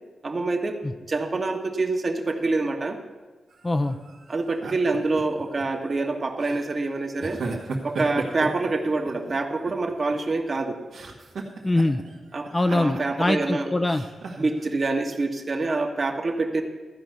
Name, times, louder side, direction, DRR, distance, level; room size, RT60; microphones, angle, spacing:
voice 1, 0.2-0.8 1.1-3.0 4.3-7.4 7.8-10.8 12.3-13.7 14.4-16.6, right 3 dB, 45° right, 3 dB, 1.5 m, -26 dB
sound 1, 3.5-5.6 6.4-6.7 7.2-9.3 9.7-10.6 10.9-12.2 12.4-13.5 13.9-14.6, right 3 dB, 80° right, 2.0 m, -36 dB
voice 2, 3.6-4.0 11.6-12.0 12.5-14.0, left 2 dB, 25° left, 8 dB, 0.7 m, -23 dB
14.0 x 5.2 x 9.3 m, 1.3 s
cardioid pair, 65°, 0 cm